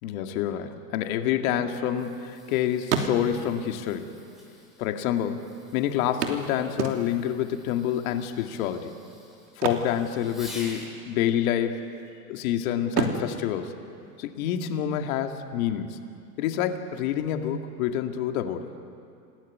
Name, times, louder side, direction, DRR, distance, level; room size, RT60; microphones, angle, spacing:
voice 1, 0.0-4.1 4.8-5.5 5.7-8.9 9.6-11.8 12.3-13.7 14.2-16.0 16.4-18.7, left 10 dB, 60° left, 5 dB, 2.4 m, -27 dB
sound 1, 1.2-2.5 2.8-3.6 4.5-4.6 4.9-5.0 6.2-7.4 9.5-10.8 11.0-11.3 11.8-12.4 12.9-14.6 16.6-16.7 17.1-17.2, right 6 dB, 75° right, 3.1 m, -31 dB
Fireworks, 1.8-11.0 13.0-13.3 14.0-14.1, left 1 dB, ahead, 7.1 m, -49 dB
28.5 x 18.5 x 9.5 m, 2.5 s
hypercardioid pair, 115°, 47 cm